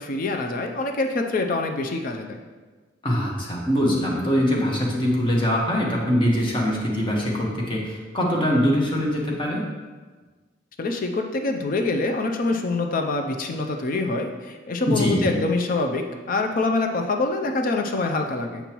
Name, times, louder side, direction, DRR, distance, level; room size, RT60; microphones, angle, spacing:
voice 1, 0.0-2.4 10.8-18.6, left 3 dB, 50° left, 4 dB, 0.4 m, -25 dB
voice 2, 3.0-9.6 14.9-15.3, equal, 25° left, -3 dB, 1.1 m, -23 dB
7.0 x 5.3 x 3.0 m, 1.3 s
head